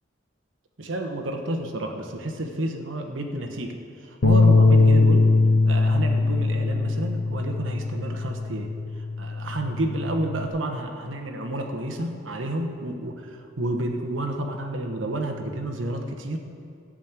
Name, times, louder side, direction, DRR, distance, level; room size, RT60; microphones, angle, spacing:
voice 1, 0.8-3.8 4.0-5.3 5.6-8.7 9.2-16.4, right 1 dB, 85° right, 3 dB, 1.2 m, -30 dB
sound 1, 4.2-10.5, left 3 dB, 55° left, 0.7 m, -21 dB
12.5 x 6.4 x 8.9 m, 2.4 s
head